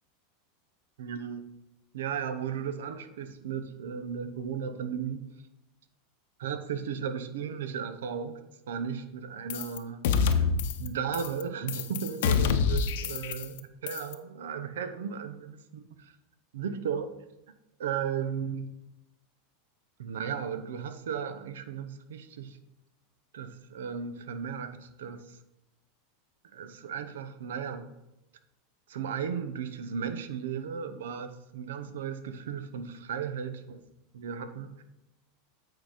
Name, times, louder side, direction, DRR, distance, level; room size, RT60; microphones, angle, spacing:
voice 1, 1.0-1.4 1.9-5.2 6.4-8.4 8.7-10.5 10.8-15.8 16.5-17.1 17.8-18.7 20.0-22.6 23.3-25.4 26.5-27.9 28.9-33.8 34.1-34.8, right 7 dB, 85° right, 9 dB, 0.7 m, -35 dB
sound 1, 9.5-9.8 10.0-10.9 11.1-11.4 11.7-13.6 13.9-14.1, left 6 dB, 75° left, 0.7 m, -26 dB
8.8 x 3.9 x 5.0 m, 0.92 s
supercardioid pair, 130°, 0 cm